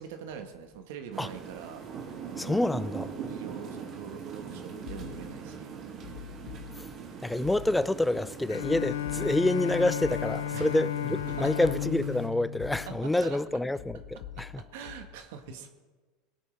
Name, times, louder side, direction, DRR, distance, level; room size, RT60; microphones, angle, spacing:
voice 1, 0.0-1.8 3.3-5.7 10.5-10.8 11.4-11.5 12.9-13.4 14.7-15.7, right 7 dB, 75° right, 1.2 m, -43 dB
sound 1, 1.1-12.3, right 6 dB, 45° right, 1.9 m, -42 dB
voice 2, 2.4-3.1 6.8-6.9 7.2-14.6, left 1 dB, 5° left, 0.4 m, -28 dB
sound 2, 4.9-5.5 6.0-7.1 7.4-8.1 8.6-10.6 11.2-12.2 12.6-13.2 13.8-15.2, left 10 dB, 70° left, 1.0 m, -46 dB
Bowed string instrument, 8.5-13.8, left 10 dB, 85° left, 0.6 m, -34 dB
18.5 x 8.7 x 3.3 m
hypercardioid pair, 100°, 0 cm